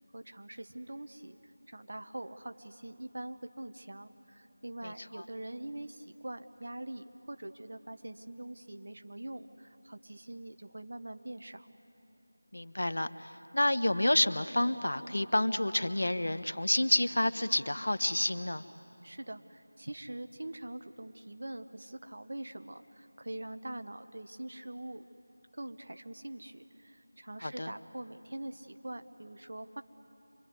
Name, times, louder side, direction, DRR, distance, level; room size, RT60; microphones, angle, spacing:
voice 1, 0.0-11.7 19.0-25.1 25.5-29.8, right 1 dB, 55° right, 8 dB, 1.2 m, -44 dB
voice 2, 12.5-18.6 27.4-27.7, left 1 dB, 70° left, 12 dB, 1.1 m, -29 dB
26.5 x 22.0 x 9.6 m, 2.9 s
figure-of-eight pair, 175°, 0 cm